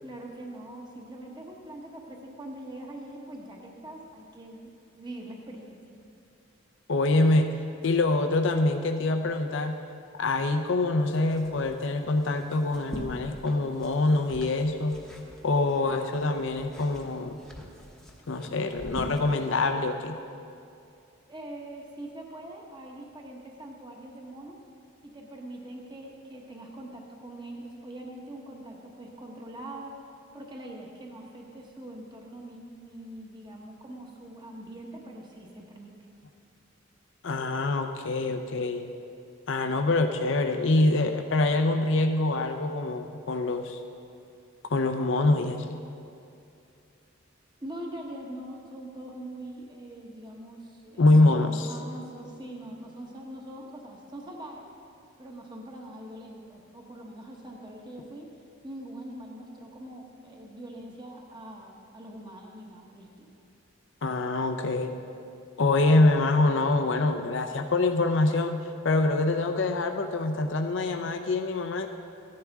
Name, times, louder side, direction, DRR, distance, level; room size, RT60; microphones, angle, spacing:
voice 1, 0.0-5.8 21.3-24.6 25.0-30.0 30.3-35.9 47.6-54.7 55.2-58.3 58.6-63.3, right 1 dB, 20° right, 0 dB, 1.1 m, -43 dB
voice 2, 6.9-7.5 7.8-9.8 10.2-15.0 15.4-17.4 18.3-20.2 37.2-38.8 39.5-43.8 44.7-45.8 51.0-51.7 64.0-64.9 65.6-71.9, left 2 dB, 65° left, 5 dB, 0.6 m, -25 dB
sound 1, 11.1-15.8 16.1-19.7, equal, 5° left, 1.0 m, -44 dB
14.5 x 10.5 x 3.5 m, 2.5 s
head